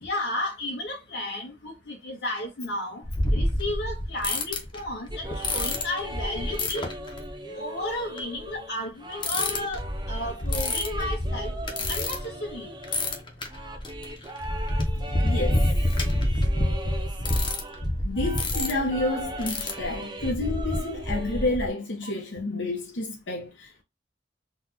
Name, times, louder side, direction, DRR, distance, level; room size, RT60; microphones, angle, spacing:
voice 1, 0.0-3.0 3.3-6.9 7.5-11.5 11.9-12.7 22.0-22.1, left 1 dB, 60° left, 1.6 m, -33 dB
sound 1, 3.0-7.3 8.2-8.4 9.2-12.5 12.8-21.7, left 1 dB, 25° left, 0.6 m, -28 dB
sound 2, 5.1-17.9 18.1-21.6, right 1 dB, 25° right, 0.5 m, -40 dB
voice 2, 14.9-16.1 18.0-23.8, left 2 dB, 90° left, 0.9 m, -30 dB
3.9 x 2.2 x 2.8 m
head